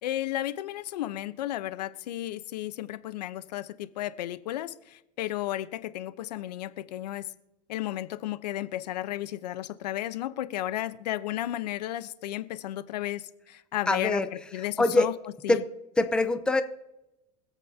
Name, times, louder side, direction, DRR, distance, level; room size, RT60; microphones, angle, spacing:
voice 1, 0.0-7.3 7.7-15.1 15.4-15.6, left 14 dB, 85° left, 13 dB, 0.9 m, -33 dB
voice 2, 13.9-14.3 14.8-15.1 15.5-15.6 16.0-16.6, left 2 dB, 5° left, 9 dB, 0.7 m, -23 dB
25.0 x 8.4 x 2.8 m, 0.93 s
supercardioid pair, 145°, 21 cm